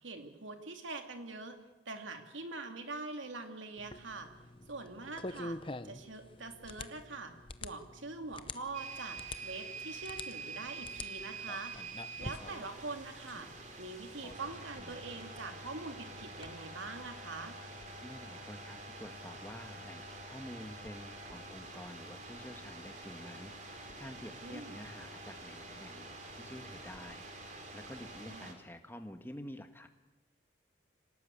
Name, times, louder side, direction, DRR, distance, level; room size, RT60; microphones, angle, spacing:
voice 1, 0.0-1.6 1.9-4.3 4.7-5.6 5.8-7.3 7.6-11.7 12.2-13.5 13.8-17.5 24.4-24.8 28.3-28.5, right 3 dB, 85° right, 6 dB, 2.7 m, -44 dB
sound 1, 3.8-16.5, left 2 dB, 25° left, 0.7 m, -48 dB
sound 2, 8.7-28.5, right 3 dB, 40° right, 3.2 m, -47 dB
voice 2, 18.0-29.9, left 1 dB, 10° left, 6 dB, 1.5 m, -49 dB
25.5 x 18.0 x 8.5 m, 1.1 s
head